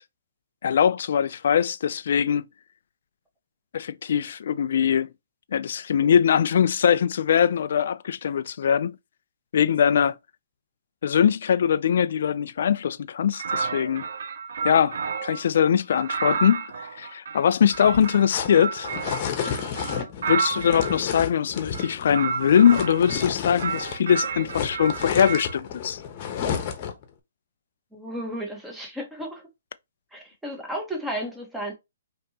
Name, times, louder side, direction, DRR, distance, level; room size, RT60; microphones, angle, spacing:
voice 1, 0.6-2.5 3.7-5.1 5.5-9.0 9.5-10.2 11.0-14.1 14.6-18.9 20.3-26.0, left 8 dB, 60° left, 0.4 m, -22 dB
sound 1, 13.3-15.4 15.9-21.0 21.7-23.3 23.6-25.6, right 5 dB, 65° right, 0.6 m, -31 dB
sound 2, 17.7-24.1 24.3-27.0, left 7 dB, 35° left, 1.0 m, -32 dB
voice 2, 27.9-29.4 30.1-31.7, equal, 5° right, 1.2 m, -33 dB
5.1 x 2.9 x 2.8 m
hypercardioid pair, 150°, 0 cm